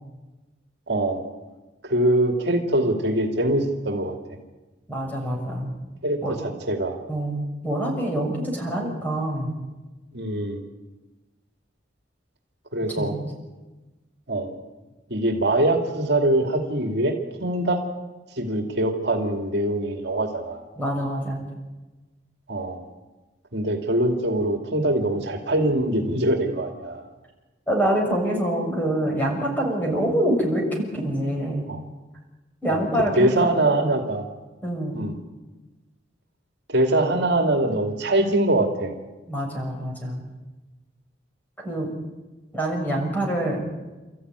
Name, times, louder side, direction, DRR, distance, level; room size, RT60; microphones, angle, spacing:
voice 1, 0.9-1.2 1.8-4.2 6.0-7.0 10.1-10.6 12.7-13.1 14.3-14.5 15.1-17.1 17.4-17.8 18.4-20.7 22.5-22.8 23.5-27.0 31.7-31.8 32.7-32.8 33.2-34.3 34.9-35.2 36.7-38.9, right 1 dB, 60° right, 3 dB, 2.6 m, -23 dB
voice 2, 4.9-5.7 6.2-6.3 7.1-9.5 13.0-13.2 20.8-21.4 27.7-31.7 32.6-33.3 33.6-33.9 34.6-35.0 39.3-40.2 41.6-41.9 42.5-43.6, right 1 dB, 10° left, 0 dB, 6.8 m, -25 dB
29.5 x 14.0 x 9.7 m, 1.2 s
head